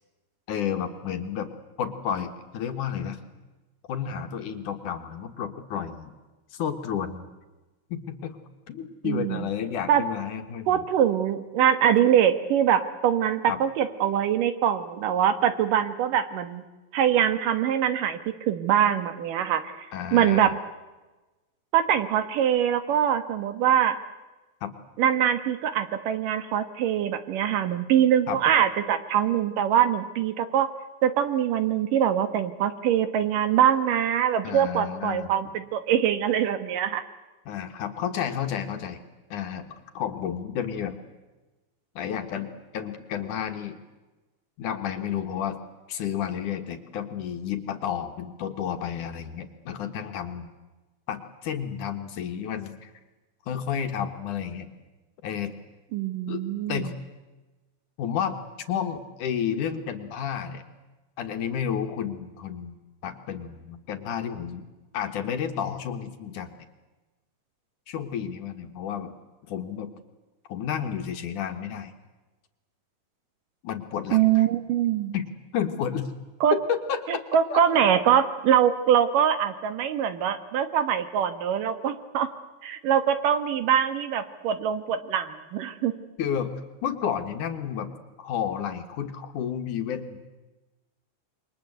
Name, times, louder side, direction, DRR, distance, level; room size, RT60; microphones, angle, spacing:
voice 1, 0.5-1.5 1.8-3.2 3.9-6.1 6.5-7.3 7.9-8.4 8.7-10.8 13.5-13.6 19.9-20.5 24.6-24.7 28.3-28.4 34.4-35.3 37.5-39.0 39.3-41.0 42.0-43.8 44.6-45.6 45.9-50.5 51.1-52.9 53.5-54.7 55.2-55.5 56.3-56.4 56.7-56.9 58.0-58.4 58.7-60.6 61.2-62.8 63.0-64.6 64.9-66.5 67.9-69.1 69.5-69.9 70.5-71.9 73.6-74.5 75.1-75.3 75.5-76.1 76.5-77.2 77.5-77.6 86.2-86.5 86.8-87.9 88.2-90.4, left 8 dB, 65° left, 6 dB, 2.9 m, -31 dB
voice 2, 9.0-9.5 9.9-10.0 10.7-16.6 16.9-18.2 18.5-20.5 21.7-24.0 25.0-30.7 31.0-37.0 55.9-56.9 74.1-75.2 76.4-76.6 77.1-82.3 82.6-85.9, right 9 dB, 70° right, 11 dB, 2.9 m, -23 dB
28.5 x 23.0 x 8.0 m, 1.1 s
omnidirectional pair, 4.1 m